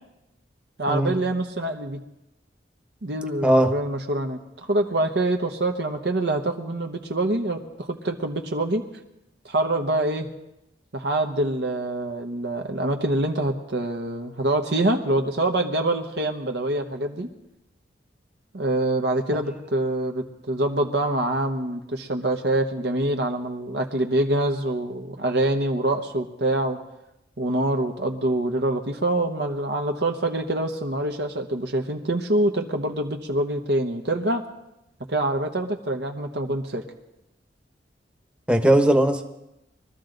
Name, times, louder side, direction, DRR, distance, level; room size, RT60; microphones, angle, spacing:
voice 1, 0.8-2.0 3.0-8.8 9.4-10.3 10.9-17.3 18.5-26.8 27.4-34.4 35.1-36.8, right 1 dB, 70° right, 3 dB, 1.1 m, -25 dB
voice 2, 3.4-3.7 19.3-19.4 38.5-39.2, right 1 dB, 5° right, 5 dB, 1.1 m, -19 dB
22.5 x 13.5 x 3.9 m, 0.89 s
head